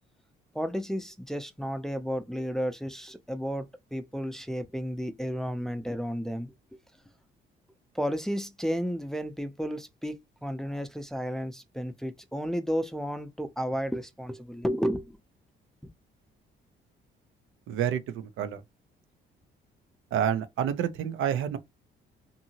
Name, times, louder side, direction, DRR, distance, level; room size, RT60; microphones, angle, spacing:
voice 1, 0.5-6.8 7.9-15.2, equal, ahead, 0.5 m, -32 dB
voice 2, 17.7-18.0 18.4-18.6 20.1-21.6, right 9 dB, 80° right, 0.6 m, -28 dB
2.7 x 2.6 x 2.8 m
cardioid pair, 90°, 20 cm